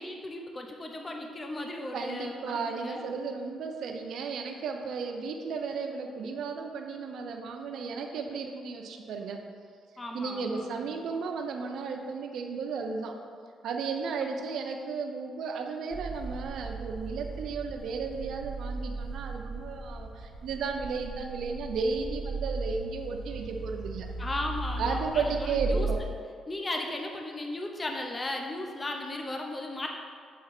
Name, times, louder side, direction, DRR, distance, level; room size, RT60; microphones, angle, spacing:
voice 1, 0.0-3.0 10.0-10.9 24.2-25.9 26.5-29.9, left 1 dB, 25° left, 2 dB, 0.8 m, -36 dB
voice 2, 1.9-9.4 10.1-13.2 13.6-24.1 24.8-26.0, right 4 dB, 70° right, 3 dB, 0.7 m, -34 dB
sound 1, 15.9-26.0, right 3 dB, 5° right, 1.6 m, -36 dB
7.6 x 3.2 x 5.9 m, 2.1 s
cardioid pair, 90°, 0 cm